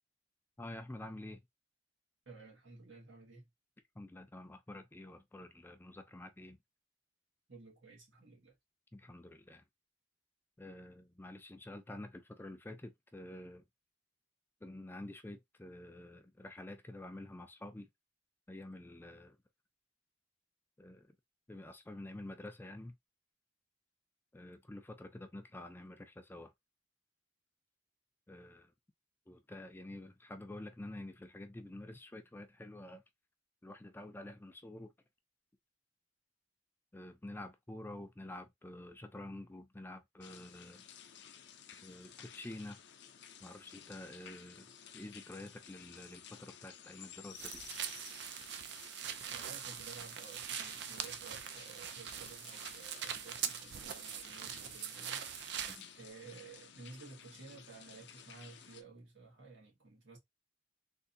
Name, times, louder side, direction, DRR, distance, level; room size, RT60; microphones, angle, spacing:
voice 1, 0.6-1.4 4.0-6.6 8.9-9.6 10.6-13.6 14.6-17.9 18.5-19.4 20.8-21.2 21.5-22.9 24.3-26.5 28.3-28.7 29.3-33.0 33.6-34.9 36.9-40.9 41.8-42.8 43.4-47.6 55.7-55.9, left 1 dB, 10° left, 0.4 m, -48 dB
voice 2, 2.2-3.5 7.5-8.6 49.3-55.2 55.9-60.2, right 4 dB, 90° right, 1.6 m, -54 dB
sound 1, 40.2-58.8, left 9 dB, 65° left, 0.5 m, -55 dB
sound 2, 47.4-55.8, right 8 dB, 65° right, 0.5 m, -42 dB
3.6 x 2.5 x 2.6 m
head